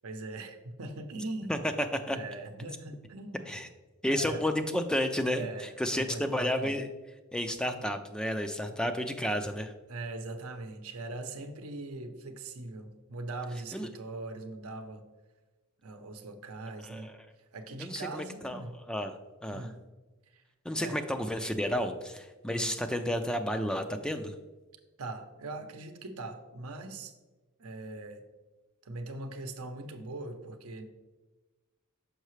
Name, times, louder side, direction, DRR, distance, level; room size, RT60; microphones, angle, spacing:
voice 1, 0.0-1.6 2.1-3.5 4.1-4.4 5.3-6.7 9.9-15.0 15.8-17.1 17.5-18.7 19.5-19.7 20.3-20.4 20.8-21.0 22.5-22.7 25.0-27.1 27.6-28.2 28.8-30.8, right 2 dB, 85° right, 6 dB, 0.7 m, -41 dB
voice 2, 1.5-2.2 3.5-3.7 4.0-6.9 7.3-9.7 13.7-13.9 16.8-17.1 17.8-19.1 19.4-19.7 20.6-24.3, equal, 5° left, 7 dB, 0.3 m, -31 dB
6.6 x 5.6 x 3.1 m, 1.2 s
head